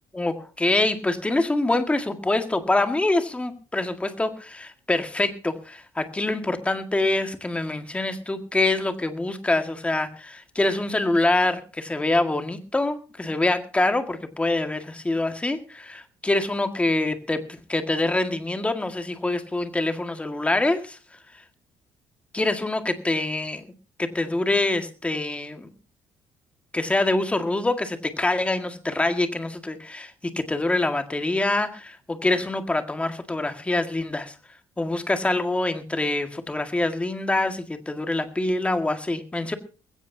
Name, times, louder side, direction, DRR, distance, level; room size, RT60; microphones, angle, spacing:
voice 1, 0.1-21.0 21.3-21.4 22.3-23.7 24.0-25.7 26.7-34.3 34.8-39.5, left 2 dB, 10° left, 7 dB, 1.8 m, -25 dB
20.5 x 16.5 x 2.8 m, 0.33 s
cardioid pair, 145°, 10 cm